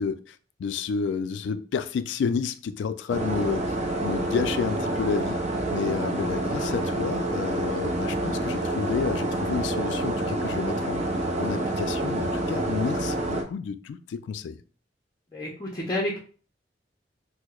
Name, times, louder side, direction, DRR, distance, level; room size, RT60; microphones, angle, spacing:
voice 1, 0.0-5.4 5.7-11.0 11.4-14.6, left 6 dB, 80° left, 11 dB, 0.3 m, -30 dB
sound 1, 3.1-13.4, right 1 dB, 40° right, 0.6 m, -28 dB
voice 2, 15.3-16.2, left 1 dB, 20° left, -2 dB, 0.5 m, -30 dB
4.5 x 2.0 x 2.3 m, 0.39 s
head